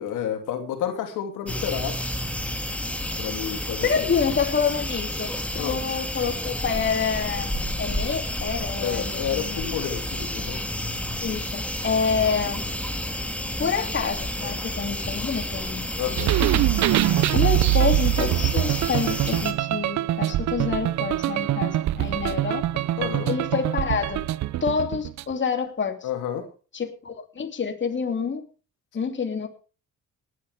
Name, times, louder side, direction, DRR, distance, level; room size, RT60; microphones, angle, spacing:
voice 1, 0.0-2.0 3.2-4.1 5.6-5.8 8.8-10.6 16.0-16.3 23.0-23.3 26.0-26.5, left 9 dB, 90° left, 5 dB, 2.9 m, -30 dB
sound 1, 1.5-19.5, left 1 dB, 5° left, 2.1 m, -30 dB
voice 2, 3.8-9.6 11.2-12.6 13.6-16.3 16.5-16.7 17.3-22.9 23.3-24.3 24.6-26.1 26.7-28.4 28.9-29.5, left 6 dB, 40° left, 5 dB, 2.9 m, -27 dB
sound 2, 16.2-25.3, right 14 dB, 65° right, 0.6 m, -23 dB
18.5 x 11.0 x 3.5 m, 0.35 s
cardioid pair, 90°, 30 cm